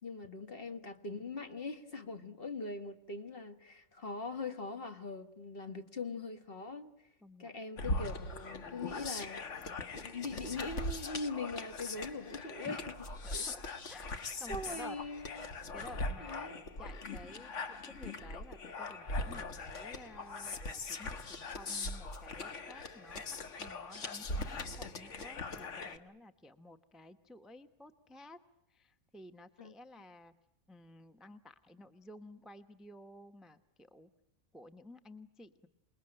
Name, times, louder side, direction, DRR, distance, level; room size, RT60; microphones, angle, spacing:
voice 1, 0.0-6.9 7.4-9.6 9.9-12.9 13.3-13.4 14.5-15.4 16.2-16.7 29.6-29.7, left 3 dB, 45° left, 1.8 m, -42 dB
voice 2, 7.2-7.5 12.6-12.8 13.2-13.6 13.9-15.0 15.7-23.2 23.6-28.4 28.7-30.3 30.7-34.1 34.5-35.7, left 1 dB, ahead, 0.8 m, -53 dB
sound 1, 7.8-26.0, left 2 dB, 60° left, 1.7 m, -41 dB
28.0 x 21.0 x 8.9 m
omnidirectional pair, 1.4 m